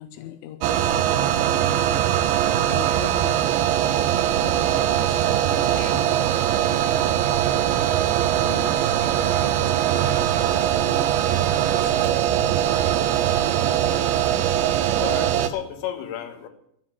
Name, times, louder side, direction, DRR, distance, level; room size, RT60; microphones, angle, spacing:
voice 1, 0.0-2.4 2.7-7.8 8.4-14.0, left 12 dB, 85° left, 11 dB, 3.1 m, -42 dB
sound 1, 0.6-15.5, right 11 dB, 85° right, 3.0 m, -21 dB
voice 2, 13.5-14.7 15.0-16.5, left 10 dB, 65° left, 6 dB, 3.0 m, -34 dB
13.0 x 7.7 x 9.7 m, 0.72 s
omnidirectional pair, 5.4 m